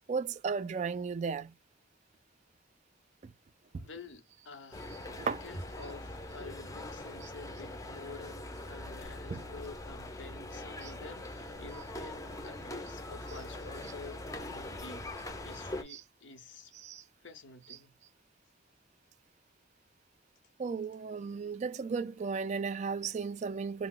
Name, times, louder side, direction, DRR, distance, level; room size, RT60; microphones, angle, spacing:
voice 1, 0.1-1.5 3.2-3.3 3.7-3.8 5.1-5.4 9.3-9.4 10.8-10.9 15.9-16.0 16.7-17.0 20.6-23.9, right 5 dB, 40° right, 0.3 m, -35 dB
voice 2, 3.7-16.7 17.2-17.9, left 4 dB, 85° left, 0.8 m, -49 dB
sound 1, 4.7-15.8, left 1 dB, 20° left, 0.5 m, -42 dB
2.8 x 2.0 x 3.7 m
head